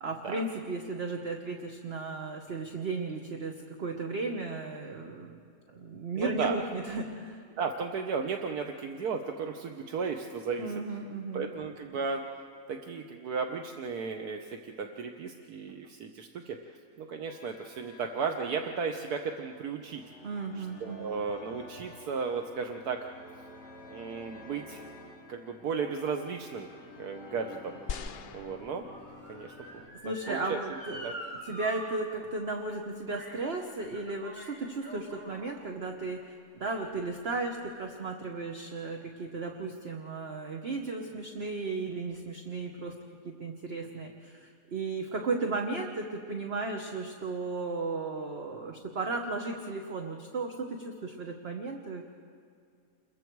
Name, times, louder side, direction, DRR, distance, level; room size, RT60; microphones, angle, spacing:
voice 1, 0.0-5.4 5.7-7.4 10.6-11.5 20.2-21.2 30.0-42.9 43.2-52.1, right 3 dB, 45° right, 3 dB, 1.3 m, -35 dB
voice 2, 6.1-6.6 7.6-10.7 11.3-12.2 12.7-16.6 17.0-20.0 20.6-23.0 23.9-24.9 25.3-26.7 27.0-27.8 28.3-28.9 29.3-29.5 30.0-30.6 31.0-31.1 45.4-45.5, right 5 dB, 75° right, 4 dB, 1.4 m, -35 dB
sound 1, 17.2-29.9, left 2 dB, 45° left, 4.8 m, -51 dB
Motor vehicle (road) / Siren, 26.6-31.8 32.2-32.3 33.1-33.4 33.8-35.4 36.2-36.3, right 1 dB, 20° right, 4.3 m, -46 dB
sound 2, 27.9-29.4 30.2-30.3, left 6 dB, 70° left, 0.5 m, -41 dB
29.0 x 22.0 x 4.7 m, 2.3 s
omnidirectional pair, 1.6 m